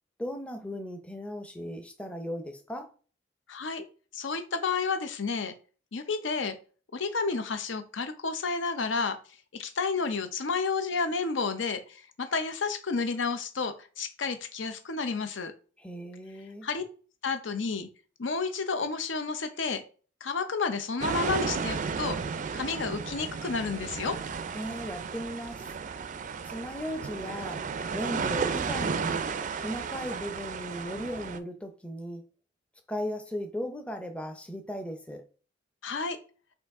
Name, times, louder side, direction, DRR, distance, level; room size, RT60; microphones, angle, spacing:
voice 1, 0.2-2.9 15.8-16.7 24.5-25.7 26.5-27.6 27.9-29.3 29.6-32.2 32.9-35.3, equal, 5° left, 0.6 m, -37 dB
voice 2, 3.5-3.9 4.1-5.5 5.9-6.6 6.9-9.2 9.5-15.5 16.6-16.8 17.2-17.9 18.2-19.8 20.2-22.2 22.5-24.2 35.8-36.2, left 4 dB, 75° left, 0.7 m, -31 dB
sound 1, 21.0-31.4, right 5 dB, 40° right, 0.4 m, -33 dB
5.5 x 2.6 x 3.6 m
head